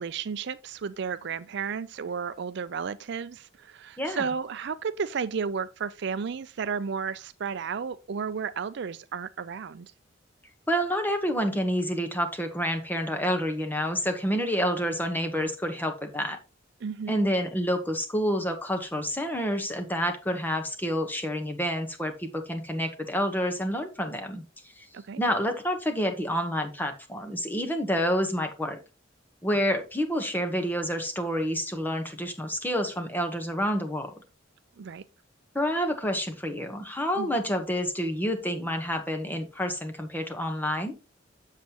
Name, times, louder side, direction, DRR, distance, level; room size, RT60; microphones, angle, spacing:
voice 1, 0.0-9.9 16.8-17.1 24.9-25.2 34.8-35.0 37.2-37.3, right 6 dB, 60° right, 0.4 m, -33 dB
voice 2, 10.7-16.4 17.1-24.9 25.2-28.8 29.4-34.1 35.5-40.9, equal, 10° left, 1.1 m, -28 dB
7.4 x 7.4 x 3.0 m
head